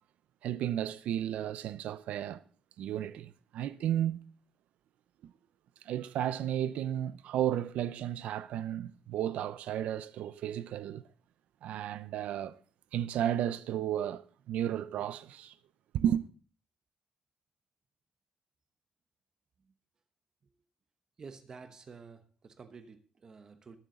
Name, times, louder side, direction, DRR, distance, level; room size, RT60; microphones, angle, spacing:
voice 1, 0.4-2.4 2.8-4.2 5.2-5.3 5.8-11.0 11.6-12.6 12.9-15.5 15.9-16.2, right 11 dB, 75° right, 0.8 m, -33 dB
voice 2, 21.2-23.8, right 5 dB, 30° right, 1.1 m, -50 dB
21.0 x 7.4 x 3.9 m
cardioid pair, 175°, 2 cm